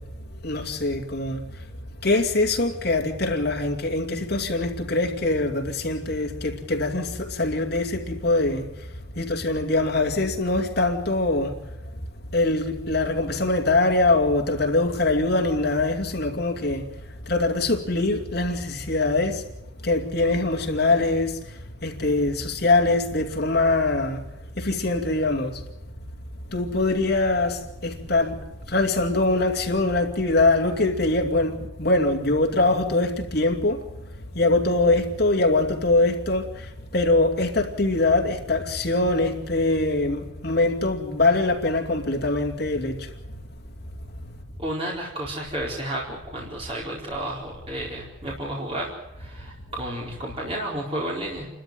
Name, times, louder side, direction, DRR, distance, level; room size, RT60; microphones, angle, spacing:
voice 1, 0.4-1.4 2.0-8.7 9.2-11.5 12.3-16.9 17.3-19.4 19.8-21.4 21.8-24.2 24.6-25.6 26.5-28.4 28.7-33.8 34.3-43.1, left 2 dB, 50° left, 2.6 m, -23 dB
voice 2, 44.6-48.9 49.2-51.5, right 1 dB, 30° right, 4.3 m, -32 dB
30.0 x 13.0 x 9.3 m
head